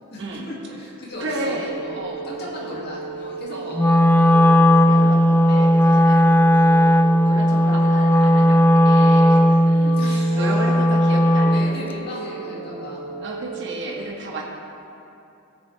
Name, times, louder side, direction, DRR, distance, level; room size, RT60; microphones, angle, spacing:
voice 1, 0.1-2.0 2.2-4.5 5.8-6.1 9.7-10.5 11.5-13.0 13.9-14.1, left 1 dB, 50° left, -5 dB, 2.3 m, -37 dB
sound 1, 1.1-13.5, right 3 dB, 70° left, 2.2 m, -34 dB
voice 2, 1.2-2.8 3.5-3.8 4.8-9.7 10.0-11.6 13.2-14.4, right 1 dB, 60° right, -2 dB, 1.3 m, -33 dB
Wind instrument woodwind instrument, 3.7-11.8, equal, 10° left, 0.3 m, -16 dB
17.0 x 6.9 x 3.3 m, 2.8 s
head